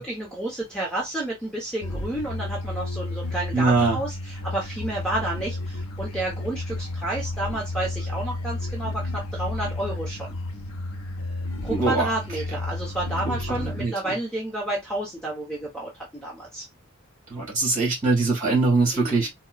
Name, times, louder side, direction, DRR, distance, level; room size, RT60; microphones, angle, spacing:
voice 1, 0.0-10.3 11.6-16.6 18.9-19.3, right 1 dB, 5° left, 1.0 m, -31 dB
sound 1, 1.8-13.9, left 2 dB, 80° left, 0.8 m, -32 dB
voice 2, 3.5-4.0 11.7-12.1 13.2-13.9 17.3-19.3, right 3 dB, 35° right, 2.1 m, -22 dB
4.3 x 2.3 x 2.5 m
head